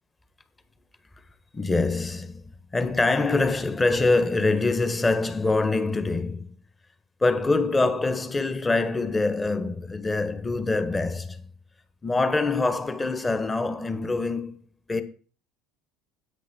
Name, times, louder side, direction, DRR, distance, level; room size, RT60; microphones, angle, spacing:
voice 1, 1.5-2.4 2.7-6.6 7.2-11.5 12.0-14.6 14.9-15.0, left 3 dB, 20° left, 1.5 m, -24 dB
10.0 x 8.4 x 4.5 m
hypercardioid pair, 75°, 0 cm